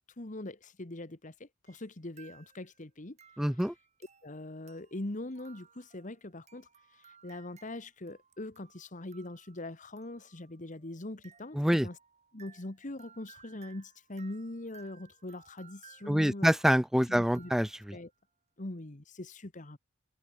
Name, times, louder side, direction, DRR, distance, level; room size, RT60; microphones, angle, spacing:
voice 1, 0.2-3.2 4.2-12.0 12.3-16.5 17.1-17.5 17.9-18.1 18.6-19.8, left 1 dB, 40° left, 1.4 m, -42 dB
sound 1, 1.7-1.9 2.2-2.8 3.2-18.1, right 6 dB, 35° right, 4.9 m, -60 dB
voice 2, 3.4-3.7 11.6-11.9 16.1-17.7, equal, ahead, 0.5 m, -26 dB
head